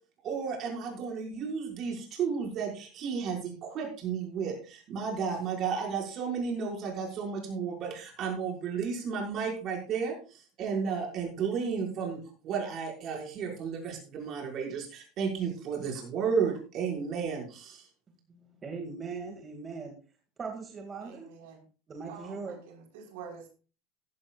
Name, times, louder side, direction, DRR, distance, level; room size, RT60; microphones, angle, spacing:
voice 1, 0.2-12.2 12.4-17.9, right 6 dB, 45° right, 0 dB, 5.7 m, -33 dB
voice 2, 18.3-19.9 20.4-21.3 21.9-22.6, right 4 dB, 25° right, 2 dB, 2.3 m, -40 dB
voice 3, 21.0-21.6 22.1-23.5, right 6 dB, 80° right, 2 dB, 4.6 m, -47 dB
15.5 x 12.0 x 2.5 m, 0.36 s
supercardioid pair, 125°, 0 cm